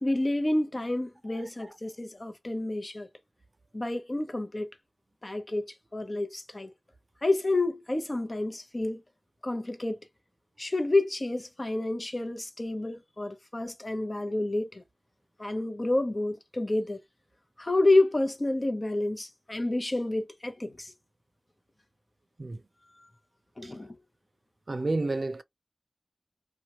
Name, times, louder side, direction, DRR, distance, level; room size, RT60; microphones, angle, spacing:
voice 1, 0.0-3.1 3.7-4.7 5.2-5.7 5.9-6.7 7.2-9.0 9.4-10.0 10.6-14.8 15.4-17.0 17.6-20.9 23.6-24.0, left 2 dB, 45° left, 0.7 m, -29 dB
voice 2, 24.7-25.4, right 2 dB, 75° right, 0.4 m, -30 dB
2.8 x 2.2 x 2.8 m
wide cardioid pair, 60°, 0 cm